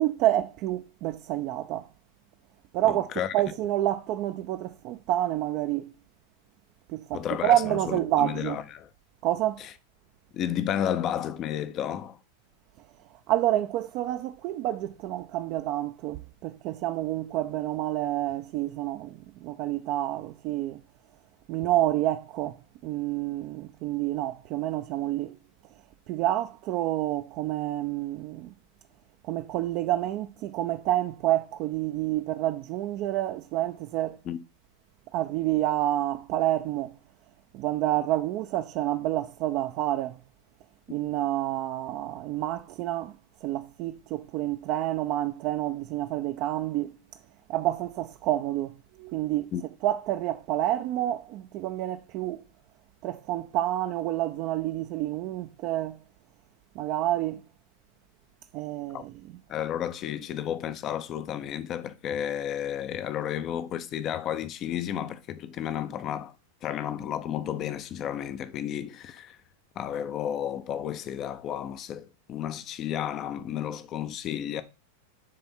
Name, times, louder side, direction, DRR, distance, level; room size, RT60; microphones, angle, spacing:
voice 1, 0.0-1.8 2.7-3.1 3.3-5.9 6.9-8.6 9.2-9.6 13.3-20.8 21.5-22.6 22.8-25.4 26.1-28.5 29.2-34.2 35.1-36.9 37.5-40.2 40.9-43.1 43.4-46.9 47.5-49.5 49.8-52.4 53.0-56.0 56.8-57.4 58.5-59.1, right 14 dB, 40° right, 0.4 m, -28 dB
voice 2, 2.9-3.3 7.1-8.9 9.6-9.7 10.3-12.2 34.3-34.4 49.5-49.6 58.9-59.0 59.5-66.3 66.6-69.4 69.8-74.6, left 10 dB, 35° left, 0.5 m, -32 dB
7.6 x 3.5 x 5.6 m
figure-of-eight pair, 90°, 0 cm